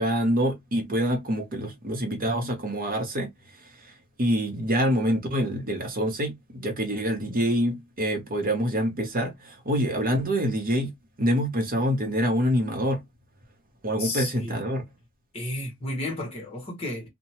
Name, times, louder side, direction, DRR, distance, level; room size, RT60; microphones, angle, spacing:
voice 1, 0.0-3.3 3.8-3.9 4.2-10.9 11.2-13.0 13.8-14.8, equal, 40° right, 0.8 m, -26 dB
voice 2, 14.0-14.6 15.3-17.1, left 1 dB, 25° left, 1.2 m, -32 dB
2.8 x 2.2 x 2.8 m
head